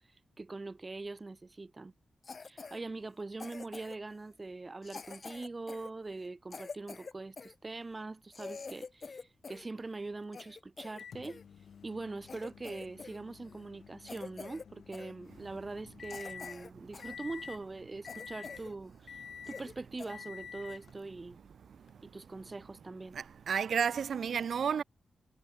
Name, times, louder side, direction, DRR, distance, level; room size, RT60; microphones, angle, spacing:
voice 1, 0.4-1.9 2.4-11.4 11.8-19.1 19.5-21.4 22.0-23.2, right 3 dB, 30° right, 1.5 m, -43 dB
Cough, 2.2-2.8 3.4-4.1 4.8-7.5 8.0-8.1 8.3-9.7 10.0-11.4 11.9-12.0 12.3-13.2 13.5-13.7 14.1-14.7 14.9-15.1 15.6-15.7 16.1-17.2 17.5-17.6 18.1-18.7 19.0-19.1 19.4-19.7 20.0-20.1 20.7-20.9, left 4 dB, 50° left, 7.7 m, -47 dB
Microwave oven, 11.0-16.6 17.0-17.6 18.0-18.7 19.1-19.7 20.1-20.9 21.9-22.0 24.0-24.1, left 7 dB, 85° left, 2.9 m, -49 dB
voice 2, 23.1-24.8, right 7 dB, 80° right, 1.4 m, -31 dB
wide cardioid pair, 90°, 0 cm